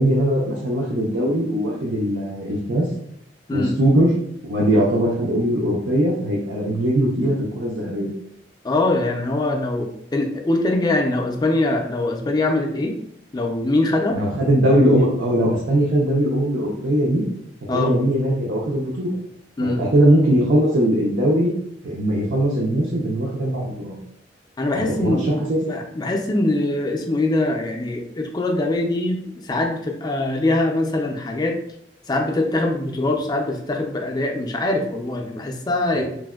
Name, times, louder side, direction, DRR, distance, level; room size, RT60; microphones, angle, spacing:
voice 1, 0.0-2.9 3.5-4.1 4.4-8.1 14.1-17.2 17.7-19.1 19.6-21.5 21.8-24.0 24.8-25.6 35.9-36.0, right 1 dB, 75° right, -4 dB, 0.5 m, -20 dB
voice 2, 8.6-12.9 13.3-14.2 17.7-17.9 19.6-19.8 24.6-31.6 32.1-36.0, left 2 dB, 20° left, 2 dB, 0.3 m, -23 dB
3.3 x 2.1 x 2.3 m, 0.73 s
head